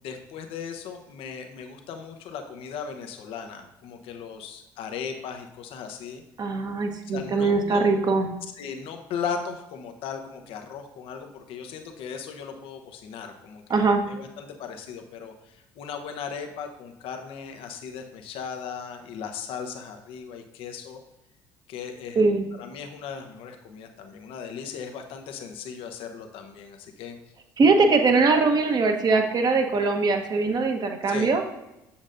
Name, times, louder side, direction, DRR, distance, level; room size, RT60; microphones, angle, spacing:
voice 1, 0.0-6.2 7.0-7.9 8.6-21.0 21.7-22.2 22.6-27.2 27.8-28.0 31.0-31.3, left 6 dB, 60° left, 5 dB, 0.9 m, -37 dB
voice 2, 6.4-8.3 13.7-14.0 22.2-22.5 27.6-31.4, right 3 dB, 40° right, 4 dB, 1.1 m, -21 dB
7.2 x 7.0 x 2.6 m, 0.94 s
figure-of-eight pair, 55°, 11 cm